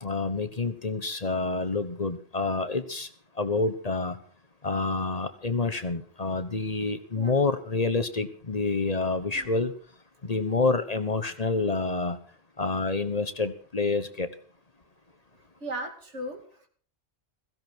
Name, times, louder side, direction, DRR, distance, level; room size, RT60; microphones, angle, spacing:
voice 1, 0.0-3.1 3.4-4.2 4.6-9.7 10.2-12.2 12.6-14.3, left 3 dB, 35° left, 11 dB, 1.1 m, -28 dB
voice 2, 15.6-16.7, right 1 dB, 85° right, 4 dB, 2.8 m, -37 dB
16.5 x 15.5 x 4.6 m, 0.44 s
omnidirectional pair, 1.2 m